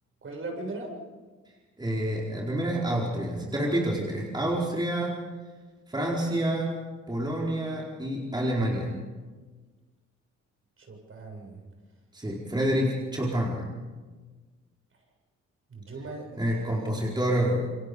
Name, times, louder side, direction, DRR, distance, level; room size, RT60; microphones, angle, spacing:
voice 1, 0.2-1.0 10.9-11.6 15.7-16.9, right 3 dB, 45° right, 2 dB, 7.1 m, -38 dB
voice 2, 1.8-5.2 5.9-6.8 7.1-8.9 12.1-13.7 16.4-17.8, right 1 dB, 15° right, -3 dB, 4.6 m, -28 dB
28.5 x 23.5 x 5.4 m, 1.3 s
cardioid pair, 90°, 30 cm